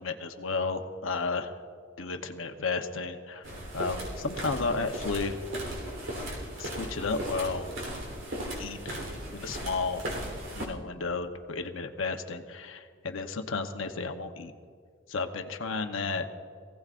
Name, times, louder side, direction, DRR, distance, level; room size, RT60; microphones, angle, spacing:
voice 1, 0.0-1.5 2.0-5.4 6.6-7.7 8.6-9.0 9.3-10.0 10.5-14.5 15.1-16.2, left 4 dB, 90° left, 6 dB, 0.9 m, -33 dB
sound 1, 3.4-10.6, right 1 dB, 85° right, 3.5 m, -37 dB
23.0 x 16.5 x 2.5 m, 2.1 s
head